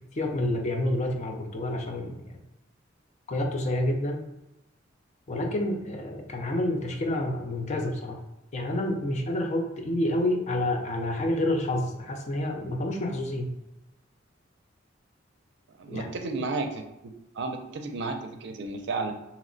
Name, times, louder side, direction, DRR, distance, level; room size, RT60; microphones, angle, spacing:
voice 1, 0.1-2.3 3.3-4.2 5.3-8.2 8.5-13.5 15.9-16.1, left 1 dB, 35° left, 3 dB, 0.5 m, -28 dB
voice 2, 15.8-16.8 17.4-19.1, right 3 dB, 60° right, 6 dB, 0.4 m, -32 dB
2.9 x 2.1 x 3.8 m, 0.94 s
head